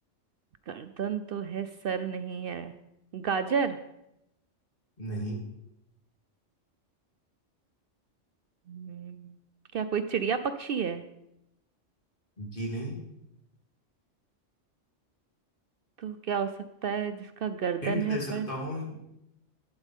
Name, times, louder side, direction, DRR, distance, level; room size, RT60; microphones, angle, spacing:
voice 1, 0.7-2.7 3.1-3.8 8.7-9.3 9.7-11.0 16.0-16.5 16.8-18.5, right 7 dB, 60° right, 11 dB, 0.7 m, -31 dB
voice 2, 5.0-5.4 12.4-13.0 17.8-18.9, equal, 45° left, -3 dB, 3.2 m, -34 dB
12.0 x 11.5 x 3.6 m, 0.83 s
omnidirectional pair, 1.3 m